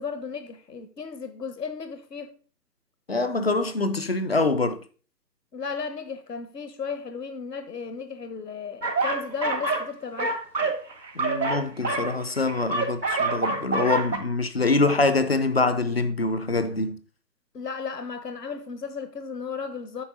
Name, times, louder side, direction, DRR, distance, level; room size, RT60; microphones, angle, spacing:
voice 1, 0.0-2.3 5.5-10.4 17.5-20.0, left 5 dB, 70° left, 1.1 m, -35 dB
voice 2, 3.1-4.8 11.2-17.0, left 3 dB, 40° left, 0.6 m, -24 dB
sound 1, 8.8-9.9 10.2-14.2, right 3 dB, 75° right, 1.7 m, -27 dB
8.6 x 5.6 x 3.9 m
figure-of-eight pair, 145°, 50 cm